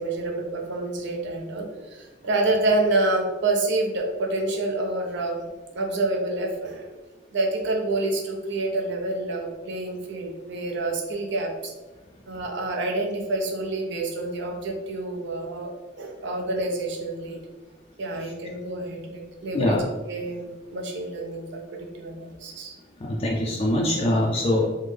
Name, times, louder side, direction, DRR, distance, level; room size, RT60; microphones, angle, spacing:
voice 1, 0.0-5.5 5.7-6.9 7.3-11.7 12.3-15.7 16.0-17.4 18.0-19.8 20.0-22.8, right 2 dB, 65° right, 1 dB, 0.6 m, -28 dB
voice 2, 23.0-24.7, left 1 dB, 30° left, -2 dB, 0.3 m, -23 dB
3.4 x 2.1 x 3.2 m, 1.2 s
head